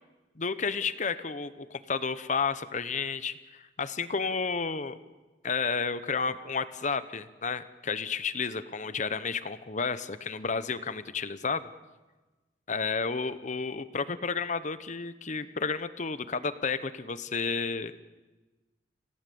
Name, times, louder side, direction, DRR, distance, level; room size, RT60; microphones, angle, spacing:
voice 1, 0.4-5.0 5.4-11.7 12.7-17.9, left 5 dB, 40° left, 13 dB, 0.9 m, -31 dB
27.0 x 17.0 x 7.0 m, 1.2 s
head